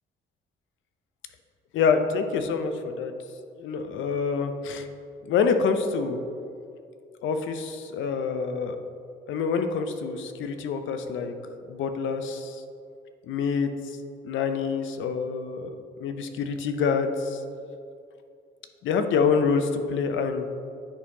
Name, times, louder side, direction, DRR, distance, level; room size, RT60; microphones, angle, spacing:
voice 1, 1.7-3.1 3.6-4.8 5.3-6.2 7.2-8.8 9.3-11.3 11.7-12.6 13.3-13.7 14.2-15.7 16.0-17.4 18.8-20.5, left 5 dB, 75° left, 7 dB, 0.6 m, -26 dB
9.9 x 4.5 x 2.8 m, 2.4 s
cardioid pair, 90°, 20 cm